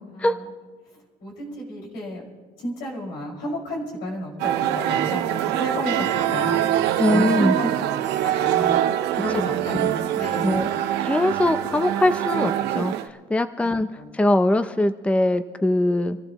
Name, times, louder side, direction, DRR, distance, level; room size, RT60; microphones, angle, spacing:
voice 1, 1.2-2.2 2.6-6.6 7.1-7.7 8.2-8.8 9.2-10.5 14.0-14.1, equal, 80° left, -3 dB, 5.8 m, -31 dB
sound 1, 4.4-13.1, right 12 dB, 85° right, 0.9 m, -24 dB
voice 2, 7.0-7.6 9.1-9.4 10.4-10.7 11.0-13.9 14.1-16.2, left 1 dB, 5° left, 11 dB, 0.6 m, -22 dB
27.5 x 14.5 x 3.1 m, 1.3 s
cardioid pair, 110°, 17 cm